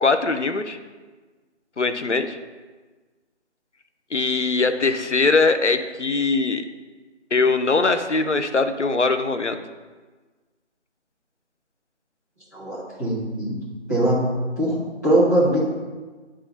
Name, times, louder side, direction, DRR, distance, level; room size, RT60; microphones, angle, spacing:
voice 1, 0.0-0.8 1.8-2.4 4.1-6.6 7.3-9.6, left 3 dB, 70° left, 9 dB, 0.8 m, -21 dB
voice 2, 12.5-13.6 13.9-14.2 14.6-14.8 15.0-15.6, right 1 dB, 15° left, -12 dB, 1.8 m, -21 dB
10.0 x 3.8 x 4.2 m, 1.3 s
figure-of-eight pair, 170°, 36 cm